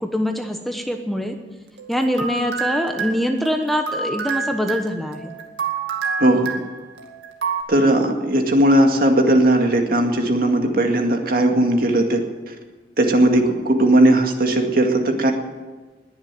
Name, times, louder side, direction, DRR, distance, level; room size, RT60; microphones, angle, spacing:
voice 1, 0.0-1.4 1.9-5.3, equal, ahead, 4 dB, 1.0 m, -24 dB
sound 1, 1.8-7.6, right 5 dB, 80° right, 2.2 m, -28 dB
voice 2, 6.2-6.6 7.7-12.2 12.5-12.6 13.0-15.3, right 1 dB, 55° right, 3 dB, 2.0 m, -17 dB
21.0 x 7.2 x 9.0 m, 1.3 s
head